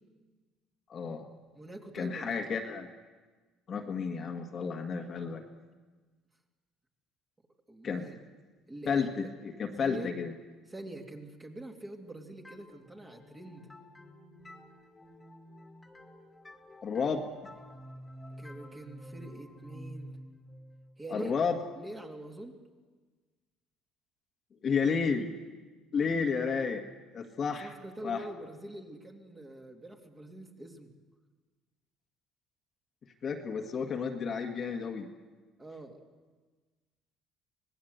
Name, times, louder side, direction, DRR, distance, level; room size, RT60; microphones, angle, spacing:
voice 1, 0.9-1.3 1.9-2.9 3.7-5.4 7.8-8.1 8.9-10.3 16.8-17.3 21.1-21.6 24.6-25.3 25.9-26.8 27.1-27.7 28.0-28.2 33.2-35.1, left 5 dB, 35° left, 3 dB, 1.8 m, -31 dB
voice 2, 1.5-2.5 7.7-8.2 8.7-9.3 9.8-10.1 10.7-13.7 18.4-20.1 21.0-21.4 21.8-22.6 27.6-30.9 35.6-36.0, right 1 dB, 15° right, 1 dB, 2.9 m, -45 dB
sound 1, 12.4-22.0, equal, 10° left, 2.6 m, -50 dB
26.0 x 19.0 x 8.1 m, 1.3 s
cardioid pair, 135°, 0 cm